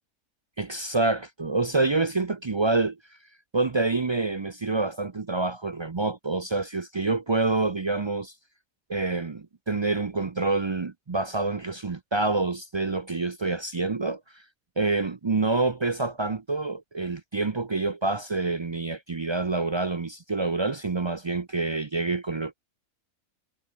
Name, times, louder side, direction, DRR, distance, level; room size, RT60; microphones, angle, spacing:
voice 1, 0.6-3.0 3.5-8.3 8.9-14.4 14.8-22.6, right 3 dB, 45° right, 0.3 m, -27 dB
omnidirectional pair, 1.5 m